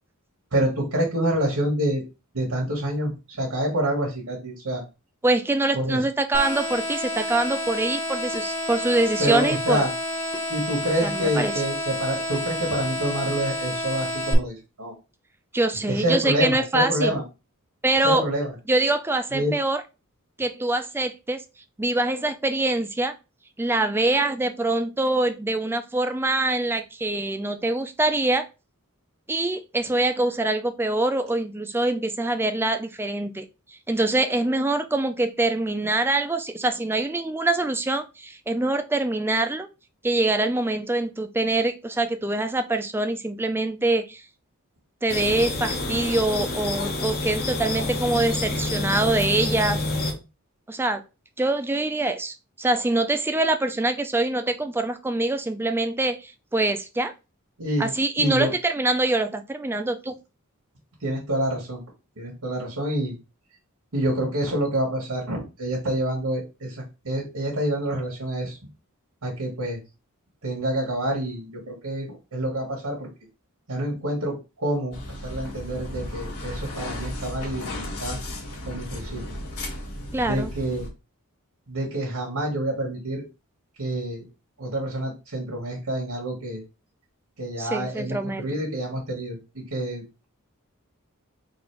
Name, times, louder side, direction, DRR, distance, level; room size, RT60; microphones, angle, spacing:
voice 1, 0.5-2.0 2.3-4.8 5.7-6.0 9.2-9.9 10.5-14.9 15.9-17.2 18.0-18.5 19.3-19.5 57.6-57.9 58.2-58.5 61.0-61.8 62.2-63.1 63.9-68.6 69.2-69.8 70.4-73.1 73.7-75.0 75.2-78.2 78.7-79.4 80.2-80.9 81.7-83.2 83.8-84.2 84.6-86.6 87.4-90.2, right 1 dB, 85° right, -3 dB, 1.5 m, -27 dB
voice 2, 5.2-9.8 11.0-11.5 15.5-17.2 17.8-18.3 18.7-19.8 20.4-21.4 21.8-23.1 23.6-28.4 29.3-33.5 33.9-39.7 40.0-44.2 45.0-49.8 50.7-51.0 51.4-57.1 57.8-60.1 80.1-80.5 87.6-88.4, right 2 dB, 10° right, 8 dB, 0.4 m, -24 dB
sound 1, 6.3-14.3, left 1 dB, 10° left, 0.9 m, -29 dB
sound 2, 45.1-50.1, left 2 dB, 45° left, 0.8 m, -28 dB
sound 3, 74.9-80.9, left 1 dB, 75° left, 1.5 m, -35 dB
4.0 x 2.6 x 4.5 m, 0.28 s
head